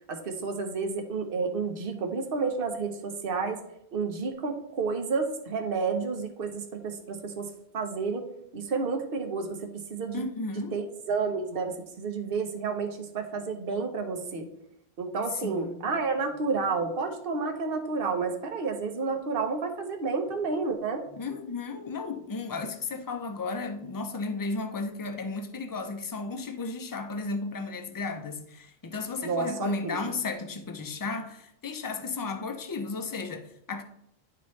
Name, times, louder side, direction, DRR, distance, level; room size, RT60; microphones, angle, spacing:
voice 1, 0.1-3.6 3.9-8.3 8.5-10.3 10.7-14.5 15.0-21.0 29.2-30.1, right 4 dB, 60° right, 1.1 m, -30 dB
voice 2, 10.1-10.8 15.4-15.9 21.1-33.8, left 3 dB, 25° left, 0.5 m, -34 dB
11.0 x 4.2 x 3.2 m
omnidirectional pair, 1.1 m